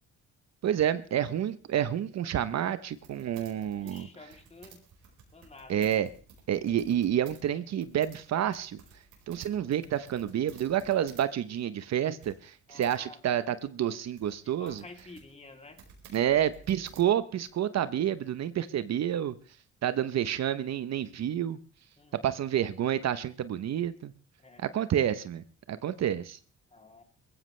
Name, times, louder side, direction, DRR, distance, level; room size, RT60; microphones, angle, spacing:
voice 1, 0.6-4.1 5.7-6.1 6.5-8.8 9.3-14.8 16.1-19.3 19.8-21.6 22.2-24.1 24.6-26.4, right 10 dB, 60° right, 14 dB, 0.9 m, -29 dB
sound 1, 2.9-7.4 7.7-11.3 11.6-11.7 12.2-13.0 13.6-17.5, right 6 dB, 85° right, 5.0 m, -55 dB
voice 2, 3.8-4.8 5.3-6.0 12.7-13.2 14.4-15.8 22.0-22.4 24.4-24.6 26.7-27.0, left 2 dB, 20° left, 4 dB, 3.0 m, -50 dB
21.0 x 15.5 x 3.3 m, 0.40 s
cardioid pair, 90°, 30 cm